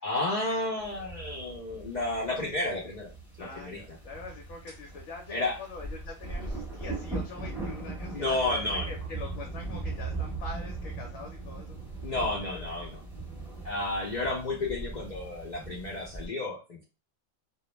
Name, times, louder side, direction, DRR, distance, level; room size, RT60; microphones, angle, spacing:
voice 1, 0.0-4.0 5.3-5.6 8.1-8.9 12.0-13.0 13.6-16.8, left 2 dB, 55° left, -2 dB, 0.5 m, -32 dB
sound 1, 0.8-16.3, right 3 dB, ahead, 0.9 m, -39 dB
voice 2, 3.4-11.8 12.0-12.9, left 4 dB, 75° left, 0 dB, 1.0 m, -44 dB
2.3 x 2.1 x 2.9 m, 0.29 s
omnidirectional pair, 1.4 m